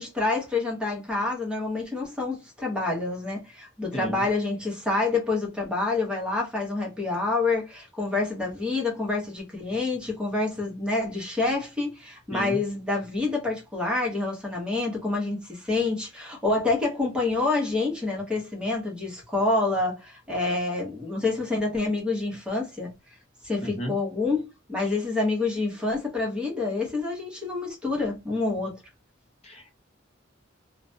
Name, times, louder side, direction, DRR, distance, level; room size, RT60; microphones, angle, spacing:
voice 1, 0.0-22.9 23.4-24.4 24.7-28.8, left 3 dB, 5° right, 0.8 m, -27 dB
voice 2, 3.9-4.2 12.3-12.6 23.8-23.9 24.9-25.0 29.4-29.7, right 1 dB, 30° left, 0.7 m, -34 dB
2.4 x 2.1 x 2.5 m
head